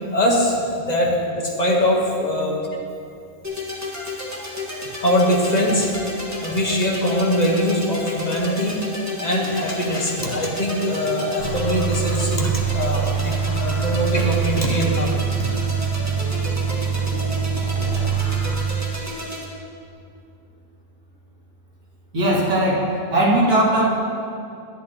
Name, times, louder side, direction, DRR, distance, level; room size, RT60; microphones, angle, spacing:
voice 1, 0.1-0.6 0.9-2.6 5.0-5.9 6.4-8.8 9.2-13.3 13.6-15.5, equal, 30° left, -1 dB, 1.1 m, -22 dB
sound 1, 3.4-19.4, left 2 dB, 10° right, 1.3 m, -32 dB
sound 2, 11.4-18.7, right 7 dB, 60° left, 1.4 m, -24 dB
voice 2, 22.1-23.9, right 1 dB, 85° right, -6 dB, 2.4 m, -19 dB
10.5 x 10.5 x 2.8 m, 2.5 s
omnidirectional pair, 1.6 m